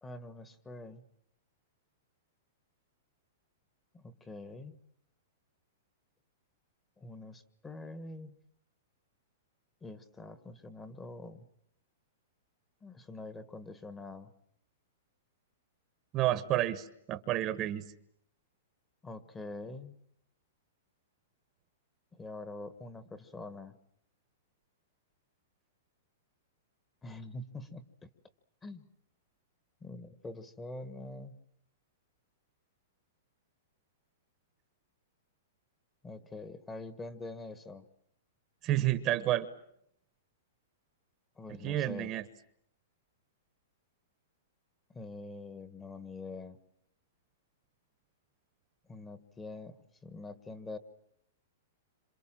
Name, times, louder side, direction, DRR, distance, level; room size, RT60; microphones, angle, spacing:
voice 1, 0.0-1.0 3.9-4.8 7.0-8.4 9.8-11.5 12.8-14.3 19.0-20.0 22.1-23.8 27.0-28.1 28.6-28.9 29.8-31.4 36.0-37.9 41.4-42.1 44.9-46.6 48.9-49.8 50.0-50.8, left 2 dB, 10° left, 12 dB, 1.4 m, -45 dB
voice 2, 16.1-17.9 38.6-39.5 41.6-42.2, right 14 dB, 30° right, 13 dB, 1.1 m, -30 dB
27.0 x 27.0 x 7.5 m, 0.72 s
hypercardioid pair, 155°, 0 cm